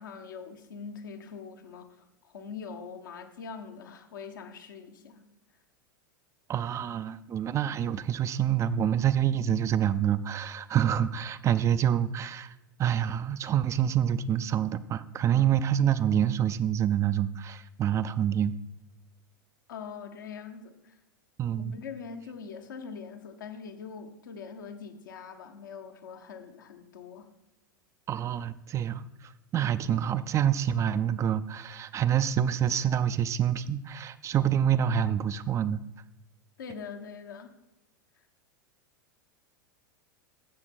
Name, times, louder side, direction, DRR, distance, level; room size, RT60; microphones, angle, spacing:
voice 1, 0.0-2.0 2.2-5.2 15.3-15.5 19.7-20.9 21.6-27.3 36.6-37.5, left 6 dB, 70° left, 5 dB, 1.3 m, -43 dB
voice 2, 6.5-12.5 12.8-18.5 21.4-21.8 28.1-29.0 29.5-35.8, right 9 dB, 25° right, 13 dB, 0.5 m, -27 dB
15.0 x 6.0 x 4.5 m, 0.97 s
figure-of-eight pair, 90°, 11 cm